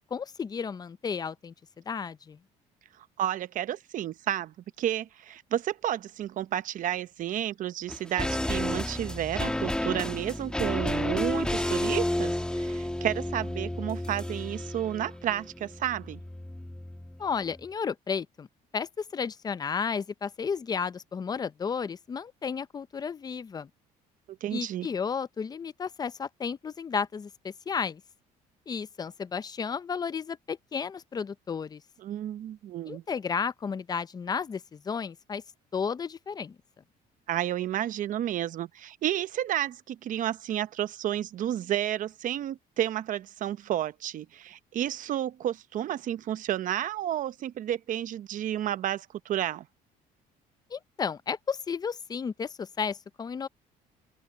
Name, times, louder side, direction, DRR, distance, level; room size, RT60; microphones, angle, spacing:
voice 1, 0.1-1.5 1.9-2.4 17.2-18.5 18.7-23.7 24.5-28.0 28.7-31.8 32.9-35.4 35.7-36.6 50.7-53.5, left 6 dB, 25° left, 0.6 m, -33 dB
voice 2, 3.0-16.2 24.3-24.9 32.0-33.0 37.3-49.7, right 11 dB, 55° right, 0.8 m, -31 dB
sound 1, 7.9-17.3 17.5-17.6, left 1 dB, 5° left, 1.4 m, -31 dB
open air
cardioid pair, 125°, 16 cm